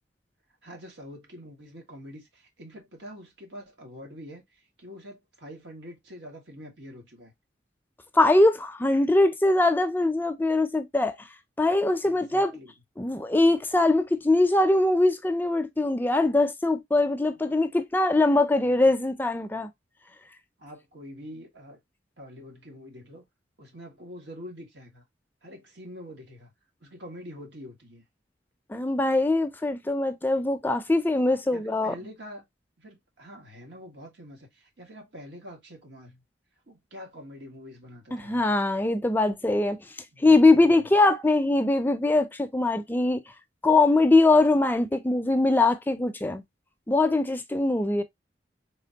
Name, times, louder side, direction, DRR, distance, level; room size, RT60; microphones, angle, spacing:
voice 1, 0.6-7.3 12.0-12.7 17.4-17.5 18.5-18.9 20.6-21.8 22.2-23.3 23.6-25.0 25.4-26.5 26.8-28.0 31.5-32.4 32.8-36.2 36.7-38.4 40.1-40.9, equal, 80° right, 1.8 m, -45 dB
voice 2, 8.1-11.1 11.6-12.5 13.0-19.7 28.7-31.9 38.1-39.8 40.2-43.2 43.6-46.4 46.9-48.0, left 2 dB, 10° left, 0.4 m, -22 dB
4.2 x 3.3 x 2.8 m
head